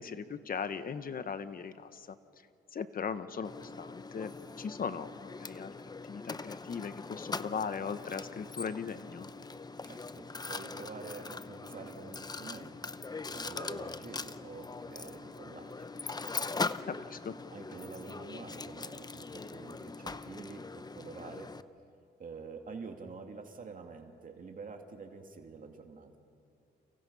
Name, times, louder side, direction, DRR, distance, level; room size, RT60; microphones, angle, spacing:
voice 1, 0.0-2.2 2.7-5.7 6.1-9.3 16.9-17.4, left 6 dB, 45° left, 11 dB, 1.4 m, -39 dB
Mechanisms, 3.4-21.6, left 3 dB, 20° left, 0.8 m, -41 dB
voice 2, 9.8-13.0 13.3-15.9 17.5-21.5 22.2-26.1, right 4 dB, 45° right, 3 dB, 2.6 m, -47 dB
29.5 x 29.5 x 5.7 m, 2.5 s
cardioid pair, 90°, 20 cm